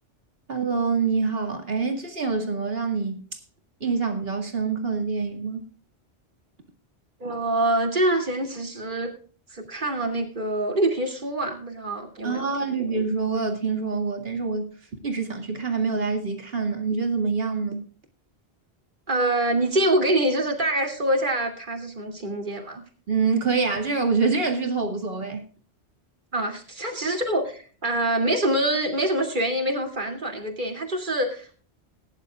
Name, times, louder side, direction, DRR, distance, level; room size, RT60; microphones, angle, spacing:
voice 1, 0.5-3.2 3.8-5.7 12.2-14.7 15.0-17.8 23.1-25.5, right 4 dB, 60° right, 2.4 m, -26 dB
voice 2, 7.2-9.1 9.5-12.9 19.1-22.8 26.3-31.5, right 1 dB, 45° right, 2.7 m, -25 dB
20.5 x 10.5 x 2.4 m
omnidirectional pair, 1.1 m